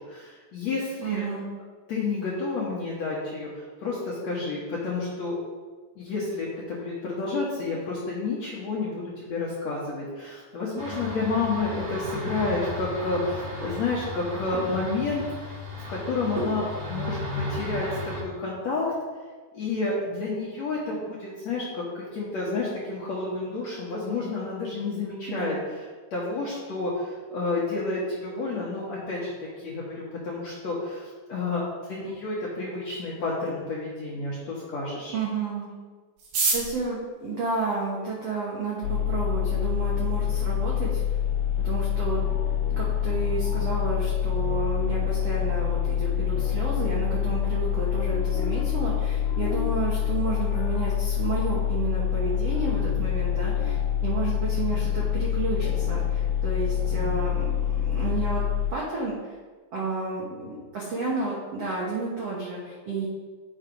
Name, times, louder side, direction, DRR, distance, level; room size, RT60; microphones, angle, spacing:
voice 1, 0.1-1.2 1.9-5.4 5.9-15.6 15.9-18.9 19.5-25.6 26.1-35.1, left 3 dB, 65° left, -6 dB, 1.8 m, -30 dB
voice 2, 1.0-1.5 25.3-25.5 35.1-35.7 36.5-41.0 41.6-42.2 42.8-57.5 57.8-58.4 58.7-59.2 59.7-63.1, right 3 dB, 75° right, -5 dB, 1.4 m, -31 dB
sound 1, 10.8-18.2, left 2 dB, 35° right, 2.6 m, -34 dB
sound 2, 36.2-38.4 39.2-39.3 39.5-39.6 39.9-40.4 40.7-40.8 41.0-41.4 41.7-41.9 42.3-42.6, right 4 dB, 60° right, 2.8 m, -30 dB
sound 3, 38.8-58.7, left 10 dB, 80° left, 2.4 m, -26 dB
8.2 x 6.3 x 5.1 m, 1.4 s
omnidirectional pair, 5.0 m